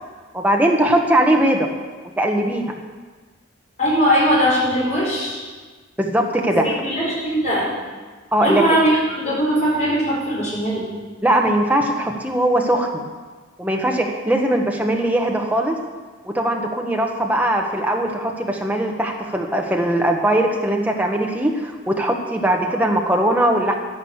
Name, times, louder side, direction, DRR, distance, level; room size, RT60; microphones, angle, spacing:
voice 1, 0.3-1.7 2.2-2.7 6.0-6.7 8.3-8.6 11.2-13.1 13.6-15.8 16.2-23.7, right 1 dB, 10° right, 1 dB, 1.1 m, -20 dB
voice 2, 3.8-5.4 6.5-7.7 8.4-10.8, equal, 35° left, -7 dB, 5.3 m, -20 dB
11.5 x 11.0 x 7.3 m, 1.4 s
head